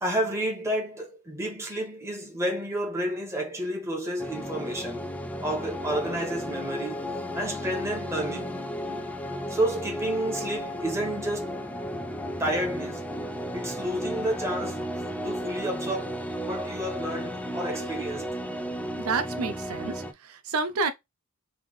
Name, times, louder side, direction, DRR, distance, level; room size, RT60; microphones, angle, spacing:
voice 1, 0.0-5.1 5.4-7.0 7.3-8.5 9.5-11.5 12.4-13.0 13.5-14.8 15.2-18.2, right 1 dB, 10° right, 1.6 m, -30 dB
sound 1, 4.2-20.1, equal, 5° left, 0.4 m, -34 dB
voice 2, 19.0-20.9, right 4 dB, 70° right, 0.5 m, -29 dB
3.7 x 3.3 x 3.2 m
head